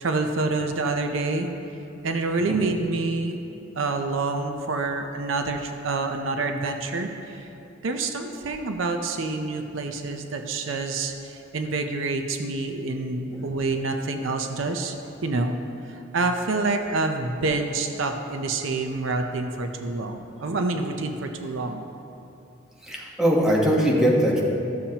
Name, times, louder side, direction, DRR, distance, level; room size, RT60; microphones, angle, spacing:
voice 1, 0.0-1.5 2.0-3.4 3.8-7.5 7.8-14.9 15.2-15.6 16.1-21.8, right 3 dB, 70° right, 5 dB, 0.6 m, -27 dB
voice 2, 22.8-24.4, equal, 5° right, -4 dB, 1.1 m, -21 dB
13.5 x 7.1 x 2.9 m, 2.8 s
head